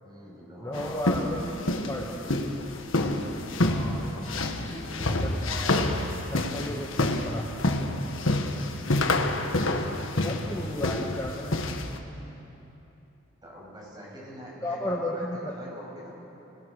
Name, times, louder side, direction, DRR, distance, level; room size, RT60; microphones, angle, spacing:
voice 1, 0.0-1.3 3.6-5.3 8.5-9.3 9.6-10.6 13.4-16.2, equal, 20° right, -4 dB, 7.1 m, -44 dB
voice 2, 0.6-2.1 4.8-5.9 6.3-7.5 10.2-11.7 12.2-12.3 14.6-15.5, left 1 dB, 15° left, -2 dB, 1.5 m, -34 dB
sound 1, 0.7-12.0, left 2 dB, 80° left, 1.5 m, -28 dB
29.0 x 20.0 x 6.6 m, 3.0 s
head